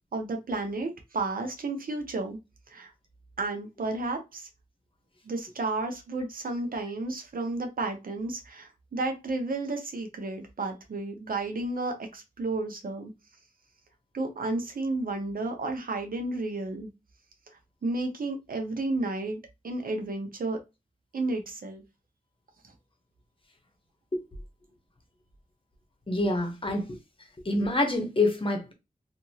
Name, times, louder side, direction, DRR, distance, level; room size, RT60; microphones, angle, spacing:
voice 1, 0.1-2.4 2.7-2.9 3.4-4.5 5.2-13.1 14.1-16.9 17.8-20.6 21.1-21.8 22.6-22.7, right 2 dB, 75° right, 0.7 m, -32 dB
voice 2, 26.1-27.0 27.4-28.7, left 2 dB, 35° left, 0.9 m, -26 dB
2.8 x 2.6 x 2.7 m
wide cardioid pair, 70°, 15 cm